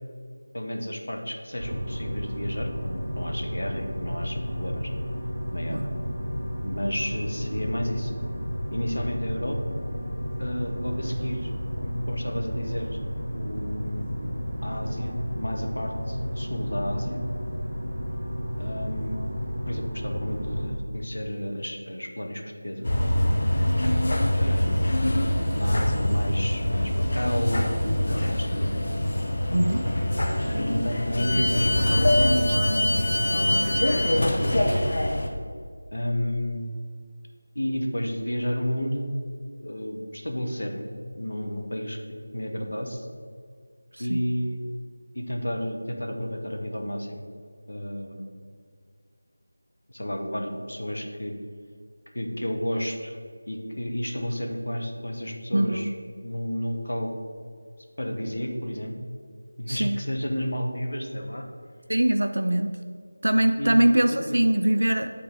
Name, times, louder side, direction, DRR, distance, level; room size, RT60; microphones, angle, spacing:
voice 1, 0.5-4.9 5.5-5.8 6.6-8.1 8.7-9.6 10.4-11.5 11.8-13.0 13.3-14.2 14.6-17.2 18.6-19.2 19.7-22.9 24.4-25.2 25.5-28.9 30.4-34.7 35.9-36.6 37.5-39.2 39.6-40.9 41.1-43.1 44.0-44.7 45.1-47.3 47.7-48.3 49.9-51.3 52.1-53.1 53.5-55.9 56.2-57.2 58.0-59.0 59.6-61.4 63.6-64.4, equal, 80° left, 3 dB, 0.9 m, -32 dB
sound 1, 1.6-20.7, equal, 15° right, 1.7 m, -32 dB
sound 2, 22.8-35.3, left 1 dB, 55° left, 0.8 m, -24 dB
voice 2, 27.8-28.3 29.5-29.9 43.9-44.2 55.5-55.9 59.7-60.0 61.9-62.8 63.2-65.1, right 1 dB, 80° right, 7 dB, 0.3 m, -23 dB
8.5 x 3.9 x 3.6 m, 2.1 s
figure-of-eight pair, 170°, 0 cm